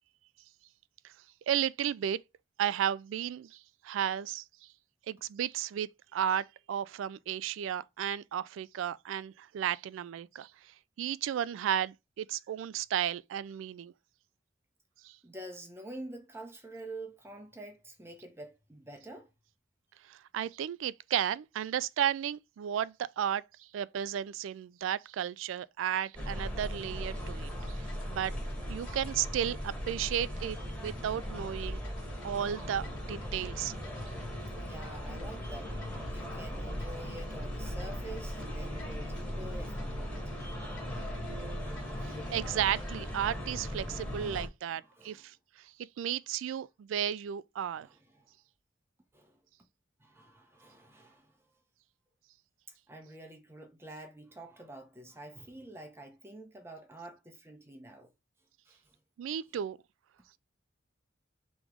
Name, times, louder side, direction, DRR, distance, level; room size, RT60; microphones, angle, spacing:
voice 1, 1.5-2.2 2.6-4.7 5.1-13.9 15.0-15.2 20.0-28.3 28.7-31.8 32.2-33.8 42.0-47.9 59.2-59.8, right 10 dB, 85° right, 0.3 m, -34 dB
voice 2, 15.2-19.3 34.6-35.8 36.1-40.3 41.6-42.3 44.7-45.3 47.8-48.3 49.1-49.4 50.0-51.4 52.9-58.1 58.7-59.0, right 1 dB, 15° right, 0.8 m, -47 dB
sound 1, 26.1-44.5, equal, 5° left, 1.3 m, -38 dB
sound 2, 27.1-43.0, equal, 85° left, 1.3 m, -54 dB
3.5 x 3.0 x 4.8 m
head